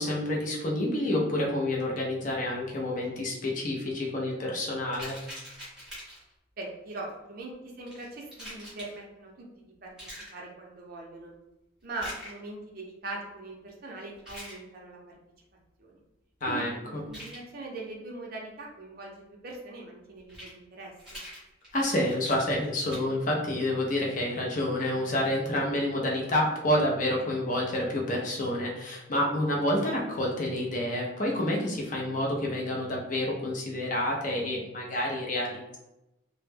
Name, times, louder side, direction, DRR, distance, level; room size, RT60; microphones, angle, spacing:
voice 1, 0.0-5.2 16.4-17.0 21.7-35.8, left 1 dB, 40° left, -2 dB, 0.5 m, -28 dB
sound 1, 4.9-6.3 7.9-8.9 10.0-10.4 11.9-12.4 14.1-14.6 17.0-17.4 20.2-20.5 21.0-23.0, equal, 5° right, 0.9 m, -44 dB
voice 2, 6.6-9.5 9.8-11.3 11.8-15.2 15.8-16.0 16.5-19.1 19.4-21.2, right 2 dB, 50° right, -1 dB, 0.5 m, -41 dB
2.1 x 2.0 x 3.2 m, 0.92 s
head